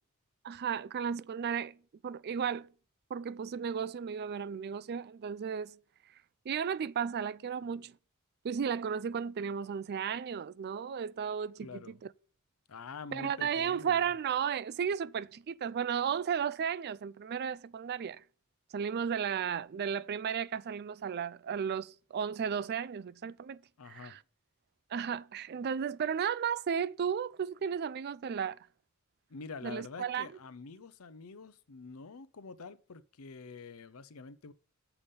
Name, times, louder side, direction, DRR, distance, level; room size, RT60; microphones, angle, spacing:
voice 1, 0.4-1.8 2.0-2.7 3.1-5.8 6.5-7.9 8.4-11.8 13.1-18.2 18.7-24.2 24.9-28.6 29.6-30.3, right 7 dB, 50° right, 0.4 m, -34 dB
voice 2, 11.6-12.0 12.7-14.1 23.8-24.2 29.3-34.5, left 4 dB, 75° left, 0.7 m, -46 dB
7.0 x 5.4 x 6.8 m
head